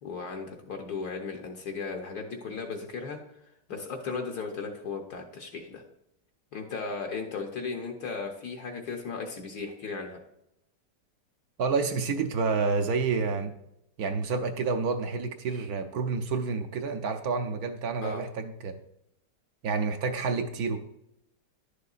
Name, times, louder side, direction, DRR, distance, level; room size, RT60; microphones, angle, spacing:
voice 1, 0.0-3.2 3.7-5.8 6.5-10.2 18.0-18.2, left 4 dB, 65° left, 3 dB, 1.3 m, -36 dB
voice 2, 11.6-13.5 14.0-18.7 19.6-20.8, right 4 dB, 65° right, 6 dB, 1.0 m, -29 dB
11.0 x 6.7 x 2.4 m, 0.83 s
omnidirectional pair, 1.9 m